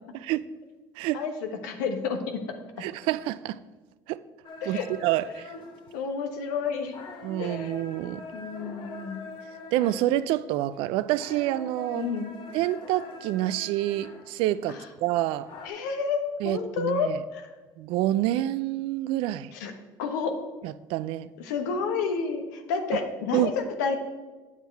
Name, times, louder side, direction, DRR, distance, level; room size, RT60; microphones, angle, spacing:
voice 1, 1.1-2.4 4.6-4.8 5.9-7.0 7.4-7.9 8.3-9.2 11.9-12.3 14.7-14.8 15.6-17.5 19.5-19.7 20.0-20.4 21.4-24.0, left 5 dB, 90° left, 1.1 m, -30 dB
voice 2, 2.8-3.6 4.1-4.2 4.7-5.5 7.2-8.2 9.7-12.1 12.5-15.5 16.4-17.2 17.8-19.5 20.6-21.3 23.3-23.5, right 14 dB, 75° right, 0.4 m, -27 dB
sound 1, 4.4-15.7, left 2 dB, 60° left, 1.3 m, -44 dB
9.2 x 7.2 x 4.6 m
supercardioid pair, 75°, 9 cm